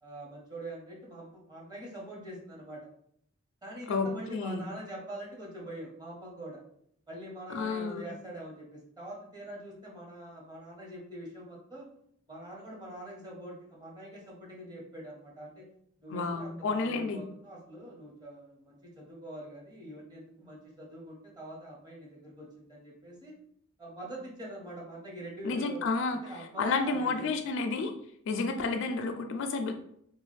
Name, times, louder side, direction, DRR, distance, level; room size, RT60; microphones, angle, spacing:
voice 1, 0.0-2.8 3.6-6.6 7.1-11.9 12.3-15.7 16.0-23.4 23.8-27.3, right 1 dB, 20° right, -3 dB, 0.9 m, -44 dB
voice 2, 3.9-4.6 7.5-8.1 16.1-17.2 25.4-26.2 26.6-27.9 28.3-29.7, left 4 dB, 65° left, 6 dB, 0.4 m, -31 dB
3.0 x 2.3 x 3.2 m, 0.68 s
head